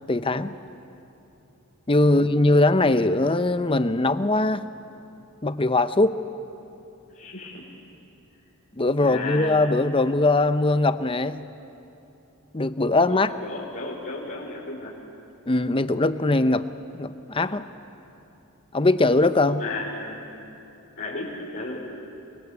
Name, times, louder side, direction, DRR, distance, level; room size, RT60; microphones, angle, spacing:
voice 1, 0.1-0.5 1.9-4.6 5.4-6.1 8.8-11.4 12.5-13.3 15.5-16.7 16.9-17.6 18.7-19.6, left 2 dB, 25° left, 11 dB, 0.7 m, -21 dB
voice 2, 7.1-7.6 9.0-9.6 13.1-14.9 19.5-20.4 20.9-21.8, left 2 dB, 50° left, -6 dB, 4.1 m, -34 dB
29.0 x 23.0 x 8.4 m, 2.9 s
head